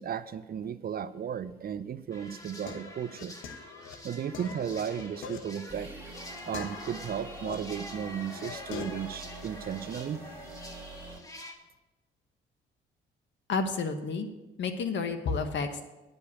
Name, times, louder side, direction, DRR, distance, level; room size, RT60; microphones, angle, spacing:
voice 1, 0.0-3.3 4.0-5.9 6.5-10.2, right 8 dB, 50° right, 13 dB, 0.6 m, -35 dB
sound 1, 2.1-7.6 8.0-9.1, left 6 dB, 85° left, 1.1 m, -44 dB
sound 2, 2.1-11.5, left 1 dB, 15° left, 1.7 m, -47 dB
sound 3, 5.7-11.2, right 2 dB, 10° right, 2.1 m, -46 dB
voice 2, 13.5-14.3 14.6-15.8, left 4 dB, 65° left, 7 dB, 1.3 m, -30 dB
10.5 x 5.3 x 8.4 m, 1.1 s
cardioid pair, 90°, 20 cm